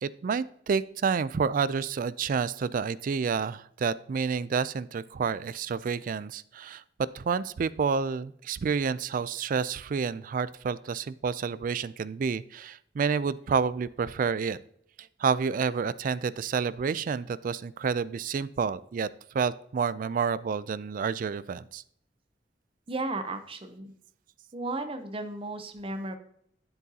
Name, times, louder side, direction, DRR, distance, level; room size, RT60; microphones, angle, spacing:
voice 1, 0.0-6.8 7.1-14.6 15.2-19.1 19.3-21.8, right 5 dB, 50° right, 18 dB, 0.3 m, -29 dB
voice 2, 22.9-23.9 24.5-26.2, right 2 dB, 30° right, 7 dB, 0.7 m, -34 dB
10.0 x 7.8 x 2.8 m, 0.67 s
head